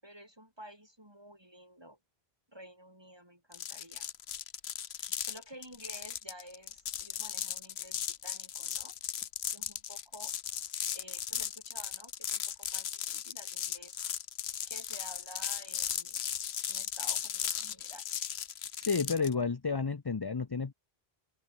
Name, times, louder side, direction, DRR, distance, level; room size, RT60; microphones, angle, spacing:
voice 1, 0.0-2.0 2.5-4.1 4.9-8.9 9.5-10.3 10.9-14.0 14.7-16.2 16.7-18.0, right 1 dB, 25° right, 6.7 m, -52 dB
sound 1, 3.5-19.3, left 9 dB, 85° left, 1.1 m, -37 dB
voice 2, 18.9-20.7, left 5 dB, 25° left, 0.6 m, -31 dB
open air
omnidirectional pair, 1.0 m